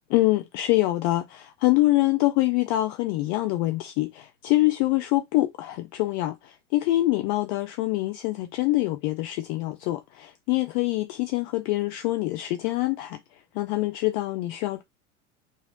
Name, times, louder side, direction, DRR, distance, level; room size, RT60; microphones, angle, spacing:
voice 1, 0.1-13.2 13.5-14.8, left 18 dB, 45° left, 0.5 m, -25 dB
2.9 x 2.7 x 4.0 m
figure-of-eight pair, 80°, 35 cm